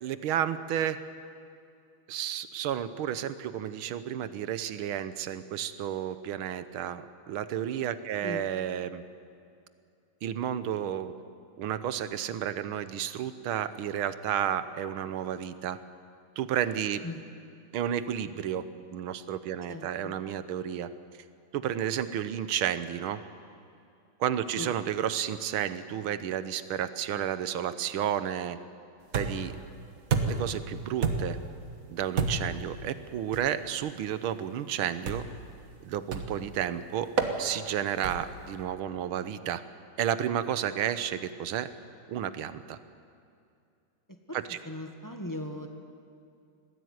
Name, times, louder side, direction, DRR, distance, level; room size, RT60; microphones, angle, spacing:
voice 1, 0.0-1.0 2.1-9.0 10.2-11.1 11.6-15.8 16.4-17.0 17.7-18.7 18.9-20.9 21.5-23.2 24.2-28.6 29.1-29.6 30.2-31.4 31.9-35.2 35.8-37.1 37.4-39.6 40.0-41.7 42.1-42.8 44.3-44.6, right 10 dB, 85° right, 13 dB, 1.7 m, -31 dB
voice 2, 19.7-20.2 24.6-24.7 44.1-44.4 44.6-45.7, left 1 dB, 10° left, 4 dB, 1.2 m, -38 dB
sound 1, 29.1-29.6 30.1-30.6 31.0-31.5 32.2-32.6 33.3-33.5 35.1-35.4 36.1-36.5 37.2-37.4 38.0-38.4, right 5 dB, 45° right, 1.6 m, -29 dB
20.5 x 15.0 x 9.5 m, 2.4 s
omnidirectional pair, 2.2 m